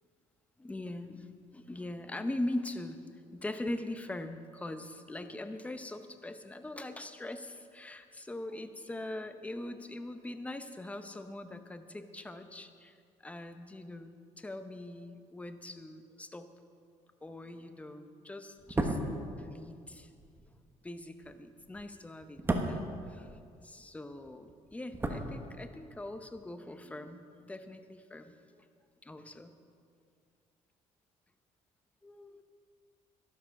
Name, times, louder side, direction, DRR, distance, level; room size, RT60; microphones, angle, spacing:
voice 1, 0.6-16.5 17.2-19.0 19.4-20.1 20.8-23.4 23.6-28.6 29.0-29.5 32.0-32.4, left 1 dB, 10° left, 9 dB, 0.8 m, -42 dB
sound 1, 18.6-23.9 24.1-26.0 26.2-26.4, right 2 dB, 15° right, 1.2 m, -36 dB
12.5 x 12.0 x 5.8 m, 2.3 s
cardioid pair, 125°, 13 cm